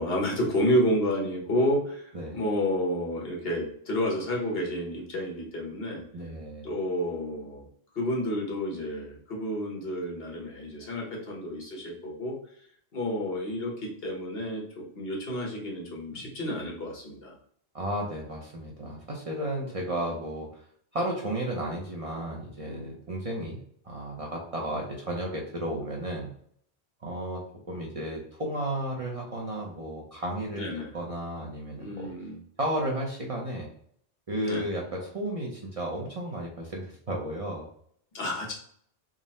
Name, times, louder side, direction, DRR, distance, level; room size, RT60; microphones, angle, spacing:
voice 1, 0.0-2.0 2.3-6.0 6.6-7.7 7.9-12.4 12.9-17.3 30.5-30.9 31.8-32.4 34.4-34.6 38.1-38.5, equal, 65° left, -1 dB, 1.3 m, -30 dB
voice 2, 6.1-6.7 17.7-20.5 20.9-23.6 23.8-26.3 27.0-30.7 30.9-32.1 32.6-33.7 34.3-37.7, right 1 dB, 40° right, -2 dB, 0.6 m, -33 dB
3.7 x 2.0 x 4.0 m, 0.63 s
omnidirectional pair, 1.1 m